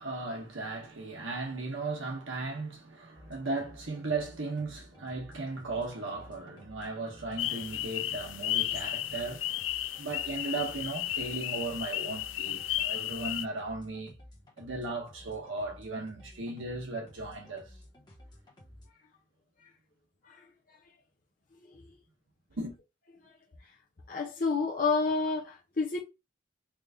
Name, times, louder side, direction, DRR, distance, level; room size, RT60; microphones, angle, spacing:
voice 1, 0.0-9.5 10.0-14.2 14.6-17.7 22.5-22.7, right 3 dB, 85° right, 1.3 m, -36 dB
sound 1, 3.1-18.9, left 1 dB, 20° left, 1.2 m, -54 dB
sound 2, 7.4-13.5, left 13 dB, 80° left, 0.3 m, -34 dB
voice 2, 20.2-20.8 21.6-21.9 23.2-23.4 23.6-23.7 24.1-26.0, left 4 dB, 45° left, 0.7 m, -31 dB
3.5 x 2.6 x 3.6 m
head